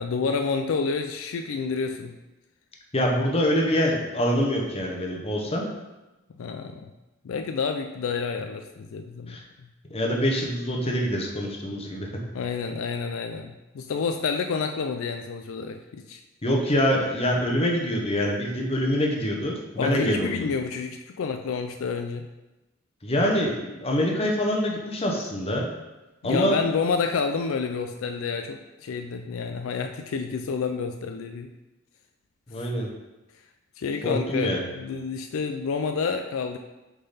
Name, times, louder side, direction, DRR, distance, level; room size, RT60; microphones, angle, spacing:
voice 1, 0.0-2.2 6.4-6.9 7.2-9.4 12.3-16.2 19.8-22.3 26.2-31.5 32.6-32.7 33.8-36.6, left 5 dB, 75° left, 6 dB, 0.4 m, -29 dB
voice 2, 2.9-5.7 9.3-9.4 9.9-12.1 16.4-20.5 23.0-25.7 26.2-26.6 32.5-32.9 34.0-34.7, equal, 30° left, 0 dB, 0.9 m, -25 dB
6.4 x 3.9 x 4.1 m, 1.0 s
head